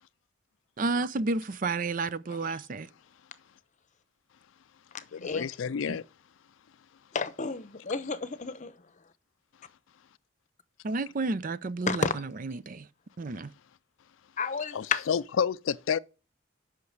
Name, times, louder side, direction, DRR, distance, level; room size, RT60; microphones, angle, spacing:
voice 1, 0.8-2.9 5.9-6.0 10.8-12.9 13.2-13.5, right 3 dB, 45° right, 0.5 m, -31 dB
voice 2, 5.1-6.0 14.7-16.0, left 7 dB, 85° left, 0.4 m, -29 dB
voice 3, 7.1-8.7 11.9-12.1 14.4-15.0, left 5 dB, 40° left, 0.8 m, -31 dB
8.4 x 5.9 x 7.9 m
head